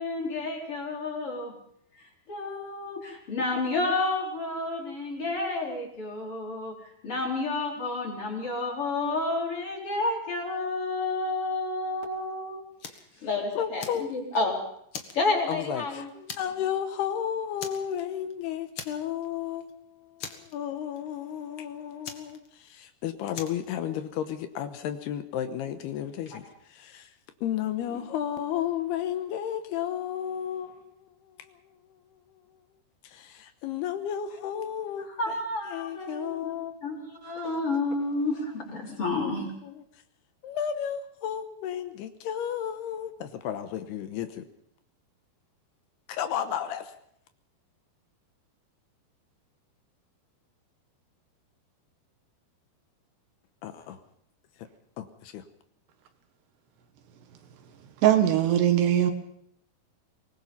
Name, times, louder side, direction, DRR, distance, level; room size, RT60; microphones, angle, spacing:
voice 1, 0.0-1.6 2.3-12.6 13.2-14.6 15.1-16.1 27.9-28.0 35.2-36.5 36.8-39.5, left 2 dB, 35° left, 4.8 m, -30 dB
Fire, 12.8-13.1 13.5-14.5 14.9-15.8 16.3-16.7 17.0-17.1 17.6-18.3 18.7-19.3 19.6-19.7 20.2-21.0 22.0-22.9 23.3-23.7, left 6 dB, 55° left, 1.4 m, -41 dB
voice 2, 13.6-14.2 15.5-26.4 26.7-27.1 27.4-31.6 33.0-35.4 35.7-36.8 39.2-39.8 40.4-44.4 46.1-46.9 53.6-54.0 54.6-54.7 55.0-55.4, left 9 dB, 75° left, 2.9 m, -33 dB
voice 3, 58.0-59.1, right 11 dB, 75° right, 3.7 m, -21 dB
23.5 x 19.5 x 5.5 m
omnidirectional pair, 4.9 m